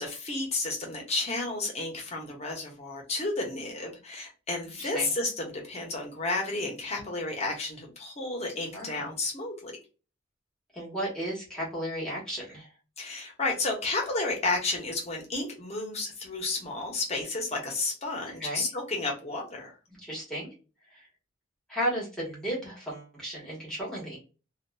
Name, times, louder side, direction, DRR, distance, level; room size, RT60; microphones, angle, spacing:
voice 1, 0.0-9.7 13.0-19.8, left 2 dB, 35° left, 1 dB, 0.9 m, -32 dB
voice 2, 8.7-9.1 10.7-12.7 18.4-18.6 20.0-20.5 20.9-21.1 21.7-24.2, equal, 5° left, -5 dB, 1.4 m, -34 dB
2.8 x 2.4 x 2.2 m, 0.33 s
head